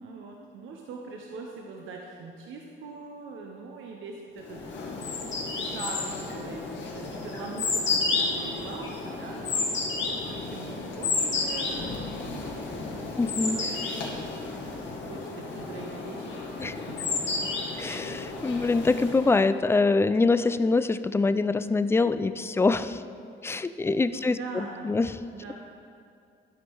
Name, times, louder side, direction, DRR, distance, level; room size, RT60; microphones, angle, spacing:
voice 1, 0.0-4.6 5.5-13.1 13.4-17.3 17.8-18.1 24.1-24.9 25.3-25.5, right 4 dB, 80° right, 0 dB, 0.8 m, -42 dB
sound 1, 4.5-19.4, left 3 dB, 70° left, 1.8 m, -32 dB
voice 2, 13.2-13.6 16.6-16.7 17.8-23.0 23.4-25.2, left 3 dB, 15° left, 12 dB, 0.3 m, -24 dB
12.0 x 5.3 x 4.6 m, 2.4 s
cardioid pair, 90°, 20 cm